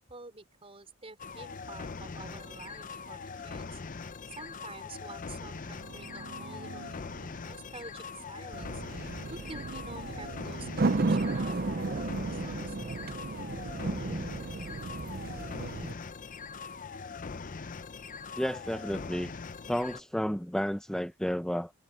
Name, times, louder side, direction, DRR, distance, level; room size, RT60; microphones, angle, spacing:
voice 1, 0.1-3.7 4.4-8.8 9.3-12.0 12.3-13.0, right 3 dB, 30° right, 5.3 m, -49 dB
sound 1, 1.2-20.0, left 5 dB, 40° left, 0.6 m, -42 dB
sound 2, 5.5-9.3, right 2 dB, 65° right, 1.4 m, -51 dB
sound 3, 8.5-15.9, right 3 dB, 45° right, 0.6 m, -33 dB
voice 2, 18.4-19.3 19.6-21.7, equal, 5° left, 0.7 m, -31 dB
head